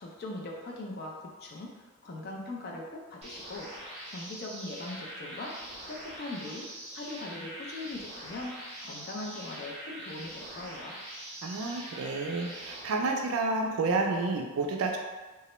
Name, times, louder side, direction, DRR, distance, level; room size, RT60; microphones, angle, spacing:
voice 1, 0.0-1.7 2.0-3.7 4.1-5.6 5.9-11.0, left 2 dB, 45° left, -1 dB, 0.4 m, -40 dB
sound 1, 3.2-12.8, right 1 dB, 30° right, 0.6 m, -43 dB
voice 2, 11.4-15.0, right 3 dB, 70° right, 2 dB, 0.4 m, -30 dB
2.3 x 2.0 x 2.9 m, 1.3 s
head